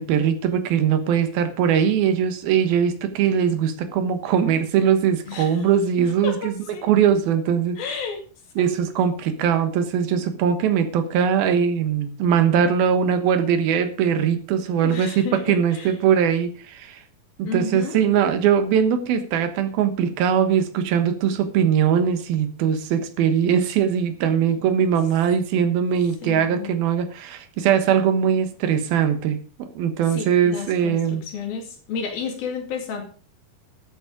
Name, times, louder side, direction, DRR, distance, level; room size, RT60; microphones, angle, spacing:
voice 1, 0.0-6.5 6.8-7.8 8.6-17.0 17.4-31.2, right 8 dB, 75° right, 10 dB, 3.1 m, -21 dB
voice 2, 5.3-5.7 6.2-6.9 7.8-8.2 8.6-9.2 14.7-15.9 17.4-18.0 24.4-24.6 26.2-26.8 30.1-33.0, left 5 dB, 70° left, 4 dB, 4.2 m, -32 dB
13.0 x 8.4 x 5.1 m, 0.39 s
omnidirectional pair, 4.3 m